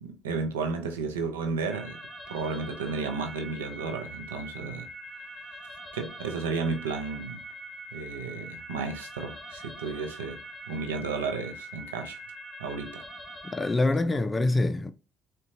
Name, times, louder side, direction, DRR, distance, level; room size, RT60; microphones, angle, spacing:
voice 1, 0.0-2.0 2.3-4.9 5.9-7.4 7.9-12.2 12.6-13.0, right 4 dB, 90° right, 0.4 m, -33 dB
sound 1, 1.7-13.7, right 1 dB, 5° left, 1.4 m, -43 dB
voice 2, 13.5-14.9, left 2 dB, 25° left, 0.4 m, -25 dB
3.9 x 2.2 x 2.5 m
hypercardioid pair, 55°, 0 cm